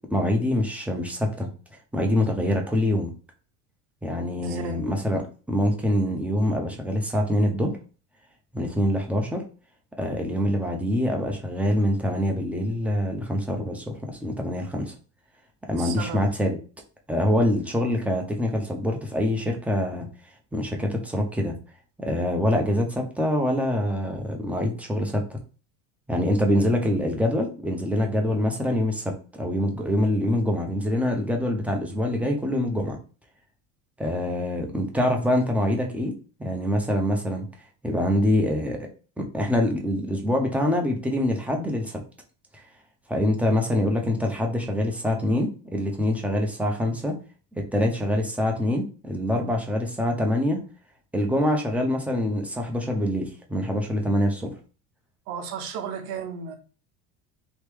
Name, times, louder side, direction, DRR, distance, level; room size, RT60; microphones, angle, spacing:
voice 1, 0.1-1.5 1.9-3.1 4.0-5.2 5.5-7.8 8.5-9.4 10.0-14.9 15.7-16.6 17.1-20.1 20.5-21.5 22.0-25.4 26.1-33.0 34.0-36.1 36.4-37.5 37.8-38.8 39.2-41.9 42.5-42.6 43.1-47.2 47.5-50.6 51.1-54.5, left 1 dB, 5° right, 2 dB, 0.7 m, -25 dB
voice 2, 4.4-4.8 15.8-16.2 55.3-56.6, right 6 dB, 60° right, 5 dB, 0.8 m, -34 dB
2.9 x 2.2 x 3.2 m, 0.37 s
hypercardioid pair, 85°, 41 cm